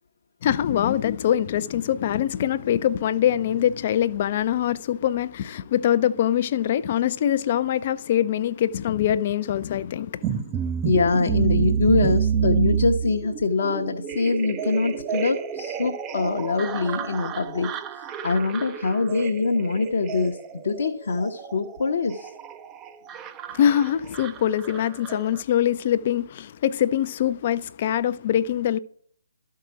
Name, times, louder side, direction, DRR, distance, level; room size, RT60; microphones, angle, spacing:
voice 1, 0.4-10.6 10.9-11.1 23.5-28.8, left 10 dB, 35° left, 0.4 m, -23 dB
sound 1, 10.2-25.4, right 8 dB, 20° right, 0.5 m, -29 dB
voice 2, 10.8-17.8 18.2-20.4 20.6-22.3, left 3 dB, 55° left, 0.8 m, -24 dB
12.5 x 4.7 x 6.0 m
figure-of-eight pair, 140°, 0 cm